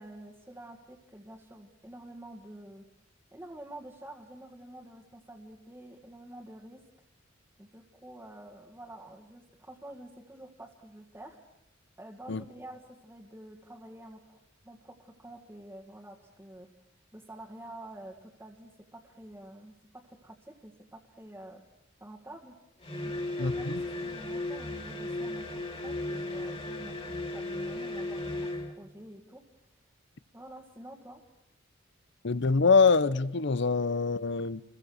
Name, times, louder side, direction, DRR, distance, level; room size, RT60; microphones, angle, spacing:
voice 1, 0.0-2.9 3.3-6.9 7.6-11.4 12.0-14.4 14.6-16.7 17.1-21.6 22.0-22.6 23.0-29.4 30.3-31.2, right 1 dB, 10° right, 2.0 m, -48 dB
sound 1, 22.8-28.8, left 1 dB, 30° left, 2.9 m, -35 dB
voice 2, 23.4-23.8 32.2-34.6, left 4 dB, 60° left, 0.8 m, -24 dB
28.5 x 22.0 x 6.5 m
head